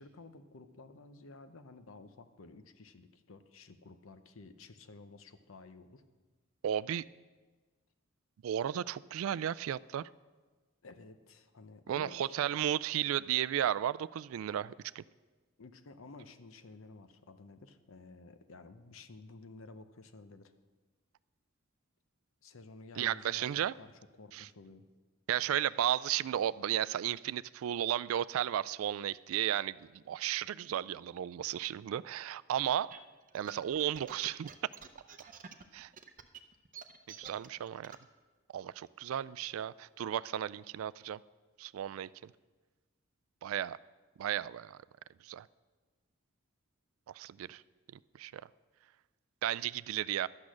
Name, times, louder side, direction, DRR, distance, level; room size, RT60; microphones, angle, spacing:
voice 1, 0.0-6.0 10.8-12.6 15.6-20.5 22.4-23.9 24.2-24.8, left 3 dB, 75° left, 10 dB, 0.8 m, -53 dB
voice 2, 6.6-7.0 8.4-10.1 11.9-15.0 23.0-23.7 24.3-24.5 25.3-33.0 33.3-34.5 35.7-35.9 37.2-37.9 38.5-41.2 41.6-42.1 43.4-43.8 44.2-44.8 45.2-45.5 47.1-47.6 48.2-48.4 49.4-50.3, right 10 dB, 75° right, 18 dB, 0.3 m, -34 dB
sound 1, 32.7-38.0, right 7 dB, 40° right, 0.6 m, -50 dB
12.0 x 8.5 x 6.2 m, 1.3 s
head